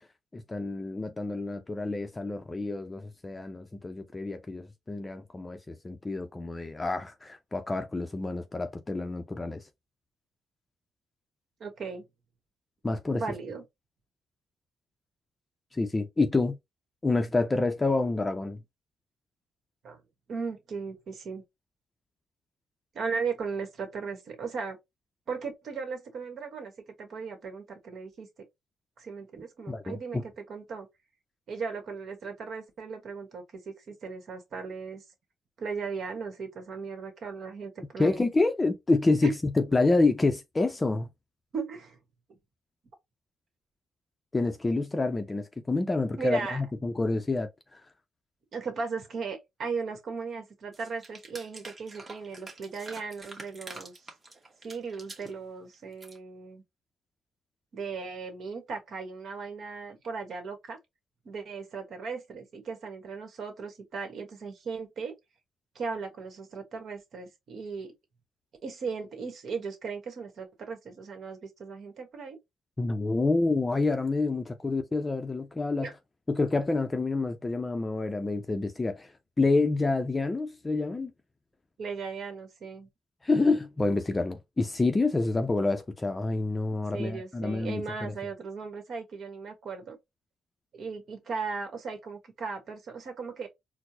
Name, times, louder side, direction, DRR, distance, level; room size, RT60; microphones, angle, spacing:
voice 1, 0.3-9.6 12.8-13.2 15.7-16.6 17.0-18.6 29.7-30.2 38.0-41.1 44.3-47.8 72.8-75.9 76.3-79.1 79.4-81.1 83.2-88.1, left 3 dB, 20° left, 0.5 m, -28 dB
voice 2, 11.6-12.0 13.1-13.6 19.8-20.0 20.3-21.4 22.9-24.8 25.3-26.7 27.0-28.3 29.0-30.9 31.5-35.0 35.6-38.3 39.2-39.3 41.5-42.0 46.2-46.6 48.5-54.0 54.6-56.6 57.7-60.8 61.2-65.1 65.7-67.9 68.6-72.4 75.8-75.9 81.8-82.9 86.9-90.0 90.7-93.5, right 5 dB, 60° right, 1.1 m, -37 dB
sound 1, 50.7-55.3 55.7-56.2, right 2 dB, 25° right, 1.0 m, -46 dB
4.3 x 2.0 x 2.7 m
cardioid pair, 90°, 0 cm